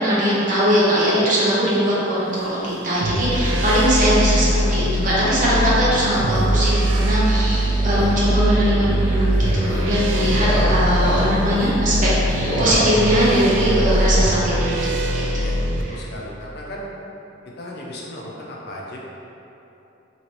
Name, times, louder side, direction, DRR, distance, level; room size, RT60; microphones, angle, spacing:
voice 1, 0.0-15.5, right 1 dB, 45° right, -8 dB, 0.7 m, -20 dB
sound 1, 2.1-12.9, equal, 40° left, 1.2 m, -39 dB
sound 2, 3.0-15.8, equal, 75° right, 0.3 m, -21 dB
sound 3, 7.7-11.5 11.9-14.1, equal, 15° left, 1.0 m, -27 dB
voice 2, 15.9-16.9 17.6-19.0, left 1 dB, 55° left, -3 dB, 0.5 m, -35 dB
3.0 x 2.9 x 3.0 m, 2.9 s
head